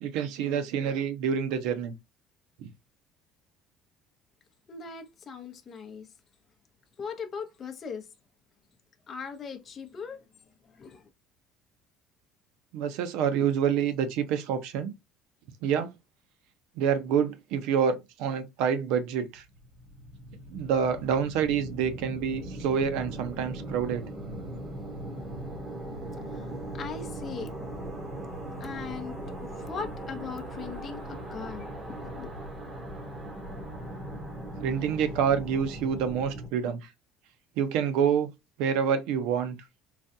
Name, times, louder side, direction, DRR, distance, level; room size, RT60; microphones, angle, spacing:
voice 1, 0.0-1.9 12.7-14.9 15.6-15.9 16.8-19.4 20.5-24.0 34.6-36.8 37.6-38.3 38.6-39.6, right 7 dB, 75° right, 0.5 m, -27 dB
voice 2, 4.7-6.1 7.0-8.0 9.1-10.2 10.7-11.0 26.3-27.5 28.6-32.3, left 6 dB, 25° left, 0.6 m, -39 dB
sound 1, 19.4-36.5, right 1 dB, 20° right, 1.1 m, -39 dB
4.0 x 2.2 x 2.6 m
cardioid pair, 170°, 0 cm